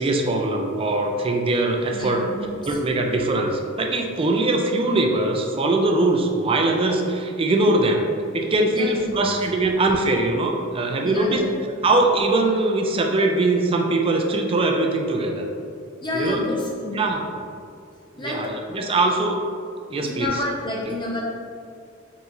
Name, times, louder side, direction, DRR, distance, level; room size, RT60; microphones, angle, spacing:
voice 1, 0.0-2.2 2.6-8.1 8.3-11.4 11.8-15.5 16.1-16.5 16.9-17.2 18.1-19.4 19.9-20.3, right 2 dB, 30° right, 2 dB, 0.4 m, -21 dB
voice 2, 1.9-2.8 8.7-9.1 11.0-11.5 16.0-17.0 18.2-18.5 20.0-21.2, left 2 dB, 25° left, -3 dB, 0.6 m, -29 dB
4.1 x 3.6 x 2.9 m, 2.4 s
head